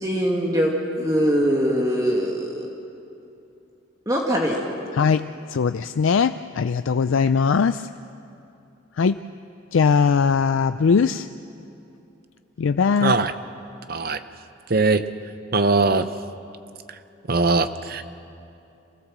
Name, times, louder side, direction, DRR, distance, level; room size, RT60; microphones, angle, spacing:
voice 1, 0.0-2.7 4.1-4.6, equal, 20° right, -1 dB, 1.9 m, -22 dB
voice 2, 4.9-7.9 9.0-9.2 9.7-11.3 12.6-13.1, left 5 dB, 90° left, 11 dB, 0.4 m, -20 dB
voice 3, 13.0-13.3 13.9-14.2 14.7-15.0 15.5-16.1 17.3-18.0, right 3 dB, 50° right, 11 dB, 0.8 m, -20 dB
27.0 x 16.5 x 7.4 m, 2.7 s
head